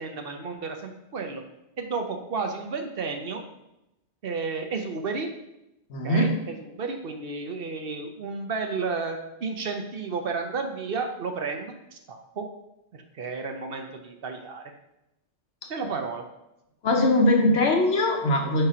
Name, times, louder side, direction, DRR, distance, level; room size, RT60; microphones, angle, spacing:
voice 1, 0.0-1.4 1.8-3.4 4.2-5.3 6.0-12.5 12.9-14.6 15.7-16.2, right 4 dB, 60° right, 4 dB, 0.9 m, -32 dB
voice 2, 5.9-6.3 16.8-18.7, left 1 dB, 80° left, 2 dB, 1.2 m, -21 dB
7.7 x 2.9 x 4.9 m, 0.89 s
omnidirectional pair, 1.1 m